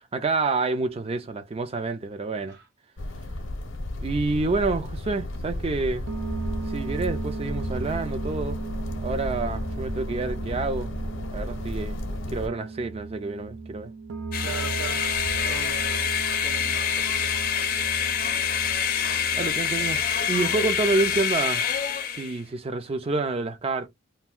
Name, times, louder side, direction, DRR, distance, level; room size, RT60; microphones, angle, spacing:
voice 1, 0.1-2.6 4.0-6.1 6.7-8.6 9.0-10.9 11.3-12.0 12.3-13.9 19.4-21.7 22.2-23.9, right 3 dB, 30° right, 0.4 m, -28 dB
voice 2, 2.4-2.7 14.4-15.0 15.4-17.6, right 5 dB, 60° right, 0.9 m, -41 dB
sound 1, 3.0-12.5, left 1 dB, 90° left, 0.6 m, -33 dB
sound 2, 6.1-21.2, right 3 dB, 85° right, 0.5 m, -36 dB
sound 3, 14.3-22.4, left 8 dB, 50° left, 0.5 m, -26 dB
2.4 x 2.2 x 3.5 m
head